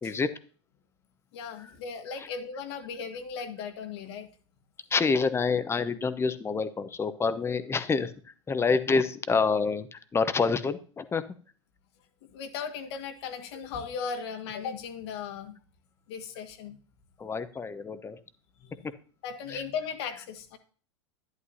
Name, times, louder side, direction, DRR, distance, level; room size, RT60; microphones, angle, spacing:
voice 1, 1.3-4.3 12.2-15.6 16.1-16.8 18.6-18.9 19.2-20.6, left 6 dB, 60° left, 6 dB, 1.7 m, -37 dB
voice 2, 4.9-11.2 17.2-18.2 19.5-19.7, left 4 dB, 15° left, 12 dB, 0.9 m, -27 dB
11.0 x 11.0 x 2.8 m, 0.40 s
hypercardioid pair, 100°, 15 cm